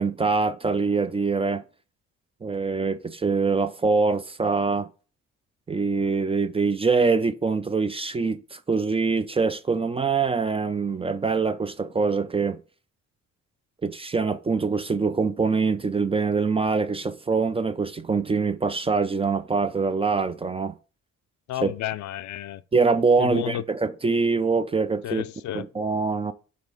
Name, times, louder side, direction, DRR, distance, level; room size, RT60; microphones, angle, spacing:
voice 1, 0.0-1.6 2.4-4.9 5.7-12.6 13.8-20.7 21.6-21.7 22.7-25.2 25.5-26.3, right 4 dB, 20° right, 0.4 m, -24 dB
voice 2, 21.5-22.6 23.2-23.6 25.0-25.7, left 13 dB, 70° left, 0.5 m, -31 dB
5.1 x 3.6 x 5.1 m
cardioid pair, 90°, 30 cm